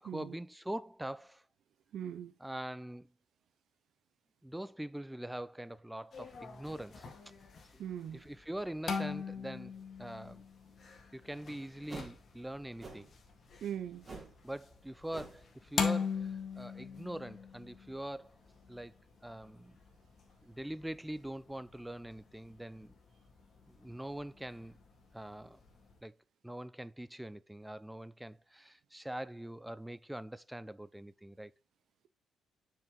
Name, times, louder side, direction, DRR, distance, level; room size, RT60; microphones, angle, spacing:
voice 1, 0.0-1.4 2.4-3.1 4.4-7.1 7.7-7.8 8.1-10.4 11.1-13.1 14.4-18.4 18.7-18.9 19.2-19.8 20.4-22.9 23.7-24.8 25.1-25.6 26.0-26.2 26.4-31.5, right 1 dB, 5° right, 0.4 m, -43 dB
voice 2, 1.9-2.3 7.8-8.2 13.6-14.1, right 9 dB, 70° right, 0.6 m, -40 dB
sound 1, 6.1-26.0, left 5 dB, 45° left, 1.9 m, -42 dB
sound 2, 11.9-12.2 12.8-13.1 14.0-14.4 14.6-14.8 15.1-15.4, right 3 dB, 30° right, 3.4 m, -47 dB
7.0 x 5.6 x 3.7 m
cardioid pair, 90°, 0 cm